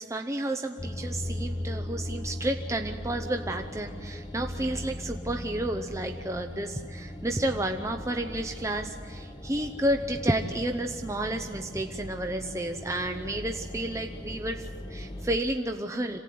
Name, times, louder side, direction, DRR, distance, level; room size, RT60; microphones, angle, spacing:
voice 1, 0.0-16.2, right 1 dB, 15° right, 5 dB, 0.8 m, -31 dB
sound 1, 0.8-15.4, left 1 dB, 25° left, 1.0 m, -38 dB
26.5 x 17.0 x 9.4 m, 2.3 s
head